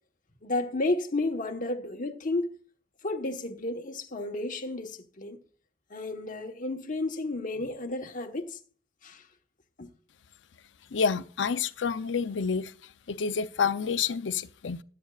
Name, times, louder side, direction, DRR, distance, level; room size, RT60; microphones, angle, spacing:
voice 1, 0.4-2.6 3.0-5.4 5.9-8.6 9.0-9.2 9.8-9.9, left 2 dB, 45° left, 1.2 m, -32 dB
voice 2, 10.9-12.7 13.1-14.8, left 6 dB, 80° left, 0.6 m, -28 dB
19.5 x 8.6 x 2.4 m
head